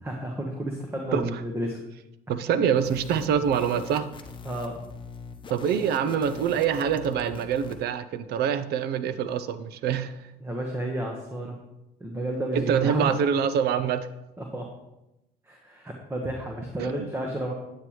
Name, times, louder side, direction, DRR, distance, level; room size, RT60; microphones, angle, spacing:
voice 1, 0.0-1.8 4.4-4.8 10.4-11.6 12.0-13.1 14.4-14.7 15.4-17.5, right 1 dB, 15° right, 1 dB, 1.2 m, -31 dB
voice 2, 2.3-4.1 5.5-10.2 12.5-14.1 16.8-17.1, right 8 dB, 75° right, 13 dB, 0.6 m, -25 dB
sound 1, 2.8-7.8, left 4 dB, 30° left, 0.9 m, -43 dB
9.4 x 8.6 x 3.1 m, 0.92 s
cardioid pair, 110°, 17 cm